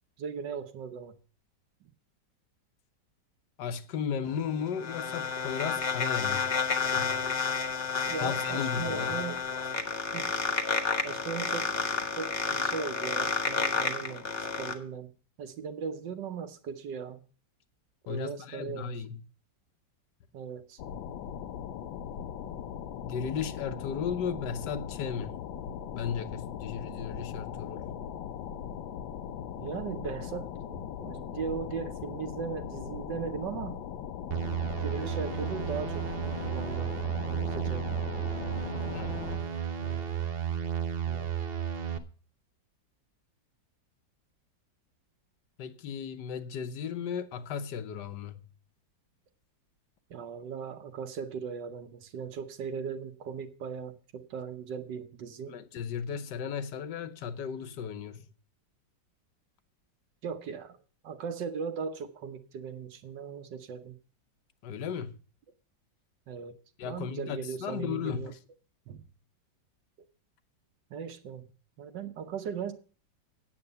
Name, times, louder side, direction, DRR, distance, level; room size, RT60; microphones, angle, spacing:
voice 1, 0.2-1.2 1.8-1.9 8.1-9.4 10.1-10.3 11.0-15.1 15.4-17.2 18.1-19.2 20.3-20.8 25.6-25.7 29.6-33.8 34.8-36.9 37.2-38.0 39.8-40.1 41.1-41.3 47.7-47.8 50.1-55.6 60.2-60.8 61.0-64.0 66.3-66.6 66.8-68.3 68.9-69.0 70.9-71.5 71.8-72.7, right 6 dB, 70° right, 1.6 m, -38 dB
voice 2, 3.6-6.5 6.9-7.3 7.9-9.1 18.1-19.2 23.0-25.4 25.9-27.9 38.9-39.5 45.6-48.5 55.5-58.2 64.6-65.2 66.8-68.4, left 7 dB, 70° left, 1.4 m, -35 dB
sound 1, 4.3-14.7, left 5 dB, 35° left, 1.3 m, -30 dB
sound 2, 20.8-39.4, left 9 dB, 85° left, 1.5 m, -39 dB
sound 3, 34.3-42.0, right 8 dB, 45° right, 0.8 m, -33 dB
8.8 x 8.1 x 6.8 m
omnidirectional pair, 2.0 m